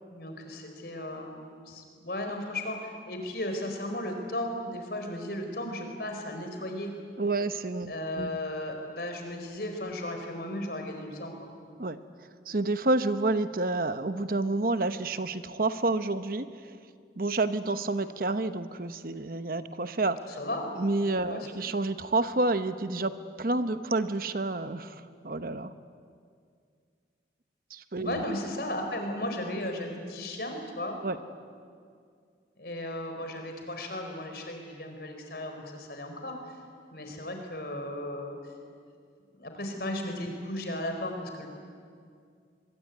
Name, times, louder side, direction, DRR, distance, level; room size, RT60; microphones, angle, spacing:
voice 1, 0.1-6.9 7.9-11.5 20.4-20.7 21.2-21.5 28.0-31.0 32.6-36.6 36.9-38.4 39.3-41.5, left 1 dB, 55° left, 4 dB, 4.6 m, -35 dB
voice 2, 7.2-8.4 11.8-12.0 12.5-16.5 17.2-20.4 20.8-25.7 27.7-28.2 31.0-31.2, right 2 dB, 50° right, 11 dB, 1.0 m, -29 dB
25.0 x 22.5 x 9.5 m, 2.2 s
head